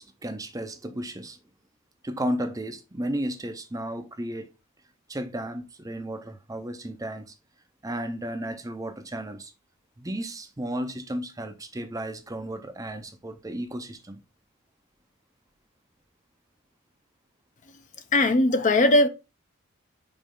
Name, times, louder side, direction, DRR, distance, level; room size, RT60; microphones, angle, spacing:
voice 1, 0.0-1.4 2.0-4.5 5.1-7.3 7.8-9.5 10.0-14.2, right 1 dB, 15° right, 0.6 m, -33 dB
voice 2, 18.1-19.1, left 2 dB, 35° left, 0.7 m, -19 dB
5.3 x 5.2 x 3.7 m
head